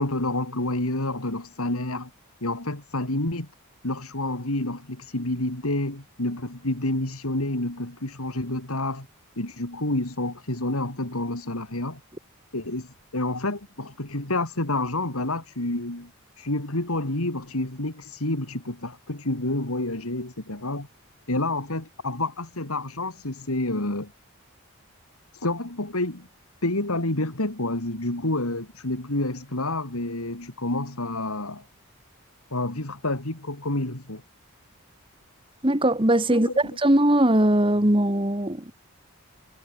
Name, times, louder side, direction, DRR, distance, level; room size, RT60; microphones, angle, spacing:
voice 1, 0.0-2.1 2.4-3.5 3.8-9.1 9.4-12.0 12.5-16.1 16.4-20.9 21.3-24.1 25.3-26.3 26.6-31.6 32.5-34.2 36.3-36.6, left 2 dB, 80° left, 3.6 m, -29 dB
voice 2, 35.6-38.7, right 1 dB, 25° right, 1.9 m, -20 dB
head